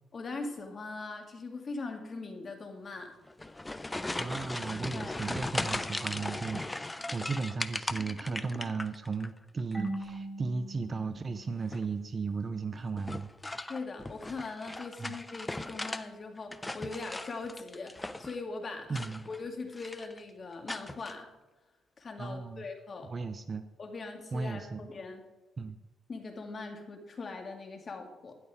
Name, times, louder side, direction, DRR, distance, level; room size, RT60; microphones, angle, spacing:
voice 1, 0.1-3.2 4.9-5.2 13.6-21.3 22.0-23.1 23.8-25.2 26.1-28.3, left 3 dB, 40° left, 4 dB, 2.1 m, -41 dB
sound 1, 3.3-9.3 9.6-10.2 11.6-12.0 13.0-16.0 16.4-18.4 18.9-19.5 19.7-20.2 20.7-21.1, left 2 dB, 15° left, 0.7 m, -38 dB
voice 2, 4.2-13.3 15.0-15.2 18.9-19.3 22.2-22.7 23.0-23.7 24.3-24.8 25.6-25.8, right 4 dB, 35° right, 10 dB, 0.7 m, -35 dB
Marimba xylophone / Wood, 9.7-12.5, right 1 dB, 5° right, 2.9 m, -41 dB
12.5 x 11.0 x 3.6 m, 1.2 s
cardioid pair, 90°, 0 cm